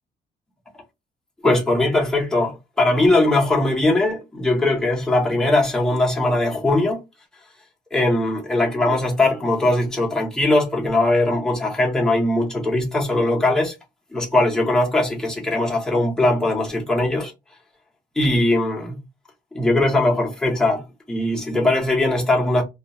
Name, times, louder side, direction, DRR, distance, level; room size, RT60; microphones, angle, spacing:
voice 1, 1.4-7.0 7.9-13.7 14.1-17.3 18.2-19.0 19.5-22.6, left 2 dB, 5° left, 0.7 m, -20 dB
2.3 x 2.2 x 2.8 m
cardioid pair, 150°, 16 cm